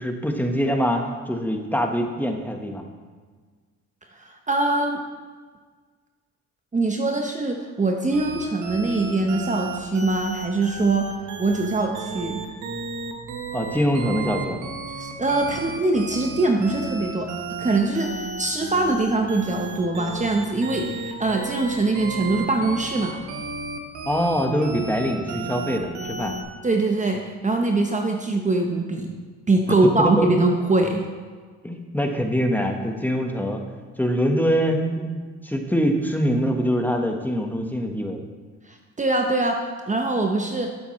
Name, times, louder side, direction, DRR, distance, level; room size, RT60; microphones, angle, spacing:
voice 1, 0.0-2.8 13.5-14.6 24.1-26.4 30.2-30.3 31.6-33.6 34.0-38.2, equal, 5° left, 3 dB, 1.3 m, -24 dB
voice 2, 4.2-5.0 6.7-11.1 11.4-12.4 15.0-17.3 17.6-23.1 26.6-29.2 29.5-31.0 38.7-39.6 39.9-40.7, right 2 dB, 25° right, 2 dB, 1.0 m, -23 dB
sound 1, 8.1-26.4, right 4 dB, 70° right, 1.4 m, -33 dB
11.5 x 8.2 x 3.2 m, 1.5 s
supercardioid pair, 65°, 31 cm